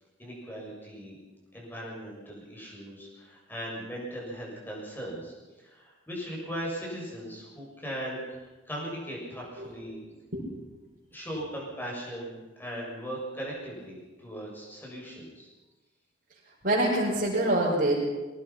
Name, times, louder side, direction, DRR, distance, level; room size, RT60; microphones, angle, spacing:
voice 1, 0.2-1.2 1.5-10.0 11.1-15.5, equal, 10° left, -3 dB, 7.0 m, -38 dB
voice 2, 16.6-17.9, right 1 dB, 50° right, -10 dB, 6.7 m, -25 dB
23.5 x 19.0 x 5.9 m, 1.2 s
head